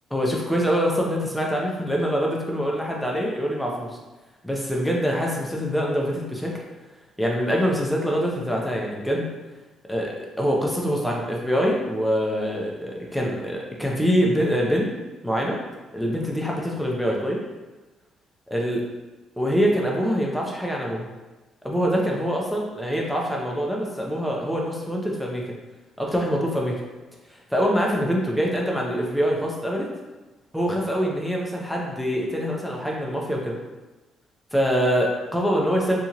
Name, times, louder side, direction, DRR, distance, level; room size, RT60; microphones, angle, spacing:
voice 1, 0.1-3.9 4.4-6.6 7.2-9.3 9.9-14.9 15.2-15.6 15.9-17.4 18.5-18.8 19.4-21.1 21.6-25.4 26.0-26.8 27.3-29.9 30.5-33.6 34.5-36.0, equal, ahead, -2 dB, 0.4 m, -24 dB
2.8 x 2.8 x 2.4 m, 1.1 s
cardioid pair, 165°, 0 cm